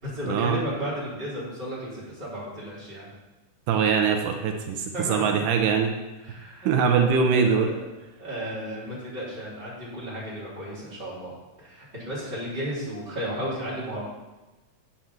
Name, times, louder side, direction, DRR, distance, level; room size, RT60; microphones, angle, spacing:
voice 1, 0.0-3.1 4.9-5.4 6.2-7.7 8.2-11.3 11.6-14.0, equal, 15° right, -8 dB, 3.6 m, -34 dB
voice 2, 3.7-5.9 6.7-7.7, right 6 dB, 85° right, 4 dB, 2.3 m, -22 dB
7.9 x 5.9 x 7.2 m, 1.1 s
omnidirectional pair, 3.6 m